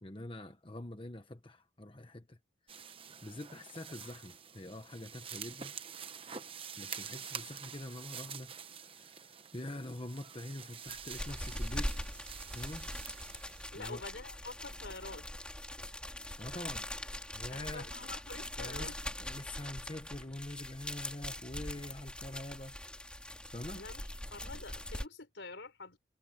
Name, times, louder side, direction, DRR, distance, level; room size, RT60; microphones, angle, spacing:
voice 1, 0.0-2.4 3.2-5.7 6.8-12.0 12.5-12.9 13.7-14.0 16.4-16.9 17.3-17.9 18.6-18.9 19.2-22.7 23.5-23.9, left 1 dB, 30° left, 1.2 m, -45 dB
sound 1, 2.7-13.7, right 7 dB, 30° right, 1.0 m, -47 dB
sound 2, 10.9-25.1, left 1 dB, 5° left, 3.6 m, -42 dB
voice 2, 13.7-15.3 17.5-19.0 23.7-24.0 24.3-26.0, left 3 dB, 80° left, 4.0 m, -47 dB
head